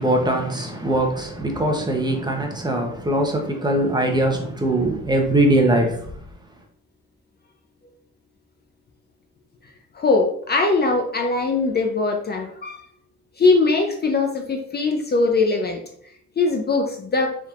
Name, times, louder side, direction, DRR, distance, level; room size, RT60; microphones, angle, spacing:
voice 1, 0.0-6.1, right 1 dB, 15° right, 0.8 m, -21 dB
voice 2, 9.9-12.9 13.4-15.8 16.4-17.4, left 3 dB, 35° left, 0.6 m, -21 dB
4.1 x 3.5 x 2.4 m
cardioid pair, 90°, 30 cm